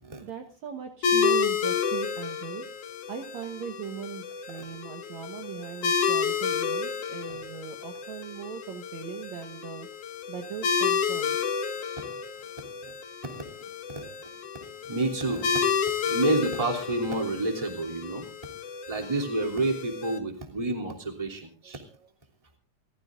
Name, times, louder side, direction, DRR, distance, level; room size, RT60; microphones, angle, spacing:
voice 1, 0.2-2.6 3.1-9.9 10.3-11.7 20.2-20.3 21.6-22.1, right 8 dB, 60° right, 5 dB, 2.2 m, -39 dB
sound 1, 1.0-20.2, left 6 dB, 65° left, 2.8 m, -30 dB
voice 2, 13.2-14.1 14.5-15.7 16.0-18.2 18.9-21.8, right 2 dB, 10° right, 2 dB, 2.5 m, -30 dB
29.0 x 14.5 x 2.6 m, 0.35 s
omnidirectional pair, 4.2 m